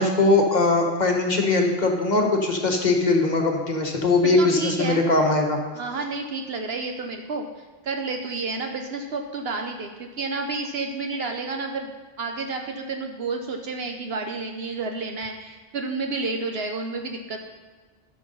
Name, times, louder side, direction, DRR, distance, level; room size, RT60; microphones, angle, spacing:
voice 1, 0.0-5.6, left 3 dB, 45° left, 2 dB, 1.4 m, -21 dB
voice 2, 4.2-5.0 5.7-7.5 7.8-17.4, right 3 dB, 70° right, 4 dB, 1.0 m, -30 dB
12.5 x 6.5 x 5.4 m, 1.3 s
omnidirectional pair, 1.1 m